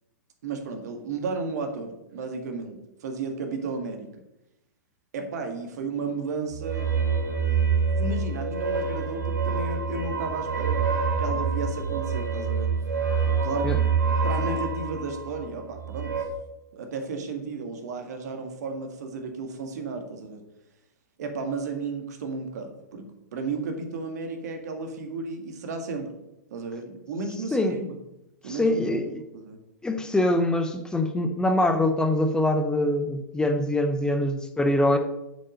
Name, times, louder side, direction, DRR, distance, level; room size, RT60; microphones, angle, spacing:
voice 1, 0.4-4.2 5.1-6.9 8.0-10.8 11.2-12.7 13.4-13.7 14.2-16.1 16.7-20.4 21.2-26.1 26.5-28.0 28.4-29.6, right 4 dB, 60° right, 5 dB, 1.8 m, -33 dB
sound 1, 6.5-16.2, right 5 dB, 80° right, 2.6 m, -26 dB
voice 2, 28.5-29.2 29.8-35.0, left 1 dB, 10° left, 6 dB, 0.7 m, -24 dB
7.3 x 5.4 x 6.4 m, 0.90 s
hypercardioid pair, 115°, 10 cm